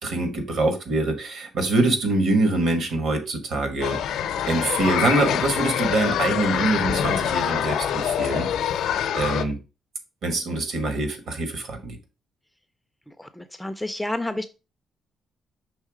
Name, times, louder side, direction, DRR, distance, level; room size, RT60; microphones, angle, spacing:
voice 1, 0.0-4.2 4.5-8.7 9.1-9.6 10.2-12.0, right 2 dB, 60° right, 1.4 m, -24 dB
sound 1, 3.8-9.4, left 9 dB, 85° left, 0.6 m, -25 dB
voice 2, 13.1-14.5, left 1 dB, 5° left, 0.4 m, -30 dB
5.5 x 3.5 x 4.9 m
cardioid pair, 160°, 0 cm